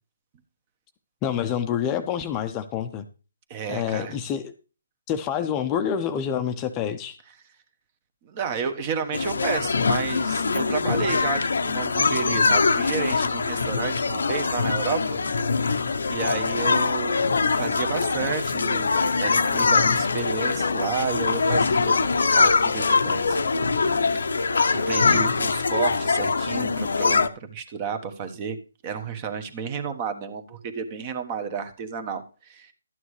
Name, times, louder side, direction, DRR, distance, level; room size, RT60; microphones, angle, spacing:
voice 1, 1.2-3.0 3.7-4.5 5.1-7.2, left 8 dB, 20° left, 8 dB, 0.7 m, -27 dB
voice 2, 3.5-4.2 8.2-15.2 16.1-18.9 19.2-23.5 24.1-24.6 24.8-28.6 28.8-32.7, right 6 dB, 30° right, 9 dB, 1.2 m, -31 dB
sound 1, 9.1-27.3, left 4 dB, 75° left, 0.8 m, -23 dB
12.5 x 9.3 x 3.2 m, 0.34 s
hypercardioid pair, 155°, 0 cm